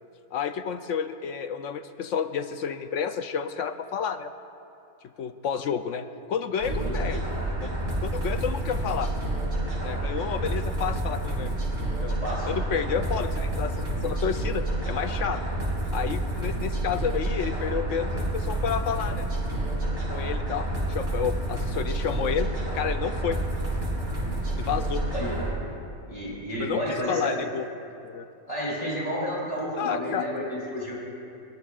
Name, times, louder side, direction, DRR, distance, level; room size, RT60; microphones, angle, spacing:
voice 1, 0.3-4.3 5.2-7.2 7.6-7.7 8.0-9.1 9.8-11.5 12.0-12.2 12.5-15.4 15.9-19.3 20.1-23.4 24.5-25.0 26.6-26.8 27.1-27.7 28.0-28.3 29.8-30.3, left 7 dB, 65° left, 9 dB, 0.8 m, -30 dB
voice 2, 6.6-7.0 12.2-12.5 25.1-25.4 26.1-27.4 28.5-30.9, equal, 25° left, -6 dB, 3.6 m, -31 dB
sound 1, 6.6-25.5, right 1 dB, 75° right, 4.9 m, -29 dB
22.5 x 21.5 x 2.4 m, 2.7 s
omnidirectional pair, 1.6 m